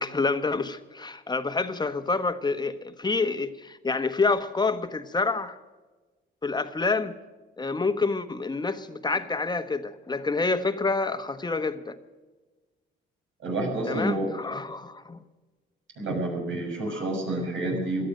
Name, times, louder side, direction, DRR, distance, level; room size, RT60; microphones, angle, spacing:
voice 1, 0.0-5.6 6.4-7.1 7.6-12.0 13.9-15.2 16.9-17.1, left 3 dB, 20° left, 1.2 m, -28 dB
voice 2, 13.4-14.3 16.0-18.1, right 2 dB, 75° right, 6.5 m, -29 dB
17.5 x 12.5 x 6.5 m
cardioid pair, 90°, 20 cm